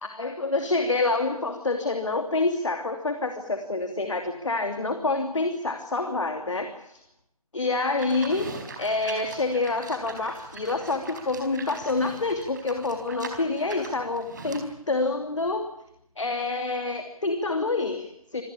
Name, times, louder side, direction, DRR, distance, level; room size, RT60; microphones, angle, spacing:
voice 1, 0.0-7.0 7.5-15.7 16.2-18.4, left 3 dB, 55° left, 6 dB, 2.9 m, -27 dB
Livestock farm animals working animals, 8.0-14.7, right 4 dB, 30° right, 4.7 m, -42 dB
27.0 x 18.5 x 8.6 m, 0.75 s
figure-of-eight pair, 155°, 19 cm